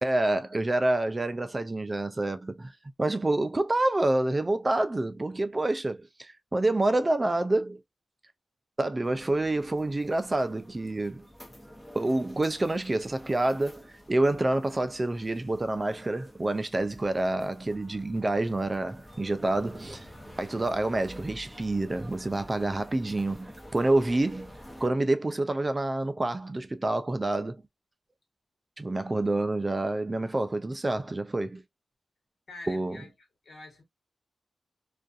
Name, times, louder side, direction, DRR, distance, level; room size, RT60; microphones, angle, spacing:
voice 1, 0.0-2.7 3.0-7.8 8.8-11.2 11.9-20.1 20.4-24.5 24.8-27.6 28.8-31.6 32.7-33.0, right 2 dB, 25° right, 0.3 m, -28 dB
sound 1, 9.0-24.9, equal, 15° left, 0.7 m, -49 dB
voice 2, 32.5-33.1 33.4-33.8, left 2 dB, 65° left, 1.3 m, -46 dB
2.4 x 2.3 x 2.5 m
wide cardioid pair, 110°, 0 cm